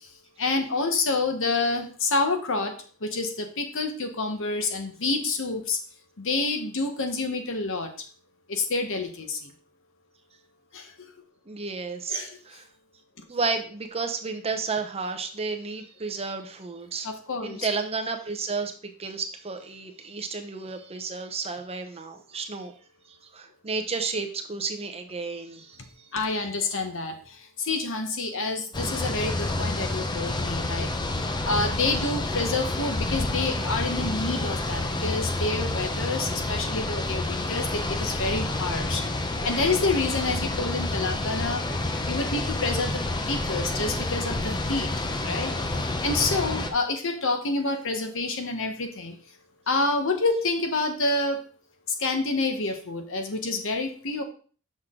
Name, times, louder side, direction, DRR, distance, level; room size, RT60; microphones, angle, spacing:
voice 1, 0.4-2.8 3.0-5.8 6.2-7.9 8.5-9.5 10.7-10.9 12.1-12.4 17.0-17.7 26.1-30.9 31.4-39.0 39.4-41.6 42.1-43.0 43.3-44.9 45.2-49.1 49.7-51.4 51.9-54.2, left 3 dB, 65° left, 6 dB, 1.2 m, -28 dB
voice 2, 11.5-12.7 13.3-17.1 17.4-18.7 19.0-22.7 23.3-26.1, right 4 dB, 30° right, 6 dB, 0.8 m, -32 dB
sound 1, 28.7-46.7, left 2 dB, 20° left, 0.6 m, -29 dB
6.5 x 6.1 x 3.7 m, 0.42 s
head